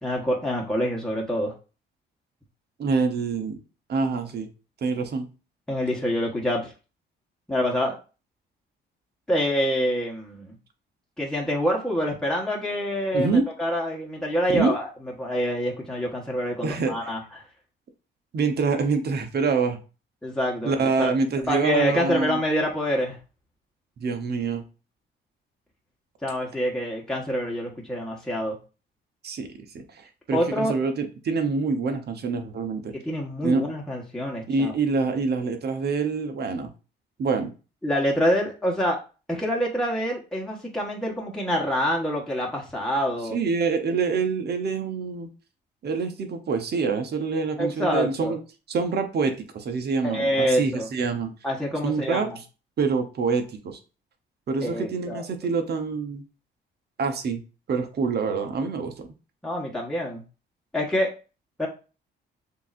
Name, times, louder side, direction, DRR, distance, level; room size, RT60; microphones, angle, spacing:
voice 1, 0.0-1.5 5.7-6.7 7.5-8.0 9.3-10.5 11.2-14.9 15.2-17.2 20.2-21.1 21.5-23.2 26.2-28.6 30.3-30.7 32.9-34.7 37.8-39.0 39.3-43.4 47.6-48.3 50.0-50.9 51.4-52.4 54.6-55.2 59.4-60.2 60.7-61.1 61.6-61.7, equal, 5° left, -2 dB, 1.3 m, -26 dB
voice 2, 2.8-3.6 3.9-4.5 4.8-5.3 13.1-13.5 14.5-14.8 16.6-16.9 18.3-19.8 20.6-22.4 24.0-24.6 29.2-32.9 33.4-33.7 34.5-36.7 37.2-37.5 43.3-45.3 45.8-48.4 48.7-51.3 51.8-52.3 52.8-53.8 54.5-56.2 57.0-57.4 57.7-59.1, right 4 dB, 55° right, 6 dB, 1.1 m, -26 dB
6.9 x 2.8 x 2.5 m, 0.32 s
cardioid pair, 90°, 20 cm